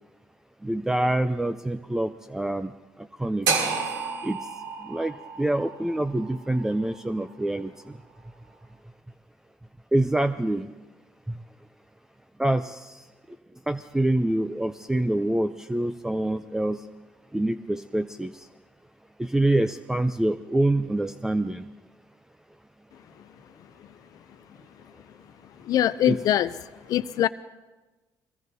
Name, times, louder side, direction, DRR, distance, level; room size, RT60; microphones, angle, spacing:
voice 1, 0.6-2.7 3.2-3.5 4.2-4.4 4.8-7.7 9.9-10.7 11.3-11.4 12.4-13.0 13.7-16.8 17.3-18.3 19.2-21.6 26.1-26.2, right 1 dB, 5° right, 10 dB, 0.5 m, -26 dB
sound 1, 3.5-7.6, right 4 dB, 85° right, 3.0 m, -31 dB
voice 2, 25.6-26.5 26.8-27.3, left 12 dB, 65° left, 14 dB, 0.4 m, -23 dB
22.0 x 22.0 x 2.7 m, 1.2 s
cardioid pair, 90°, 7 cm